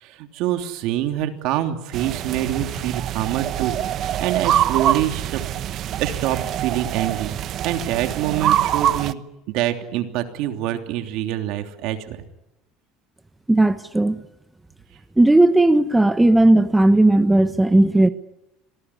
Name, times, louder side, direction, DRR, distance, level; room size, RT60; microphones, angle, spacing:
voice 1, 0.0-5.4 5.7-7.3 7.6-12.2, right 12 dB, 70° right, 6 dB, 3.0 m, -26 dB
sound 1, 1.9-9.1, right 11 dB, 50° right, 0.9 m, -24 dB
voice 2, 13.5-14.2 15.2-18.1, right 1 dB, 5° right, 10 dB, 1.1 m, -15 dB
26.0 x 19.0 x 10.0 m, 0.96 s
cardioid pair, 125°, 0 cm